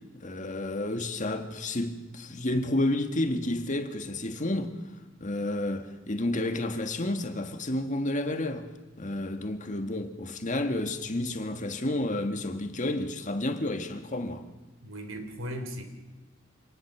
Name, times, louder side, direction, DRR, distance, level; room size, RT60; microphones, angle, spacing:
voice 1, 0.1-4.8 5.2-8.7 9.0-14.4, left 1 dB, 40° left, 1.7 m, -30 dB
voice 2, 14.8-15.9, equal, 75° right, 3.1 m, -37 dB
26.0 x 19.0 x 6.0 m
head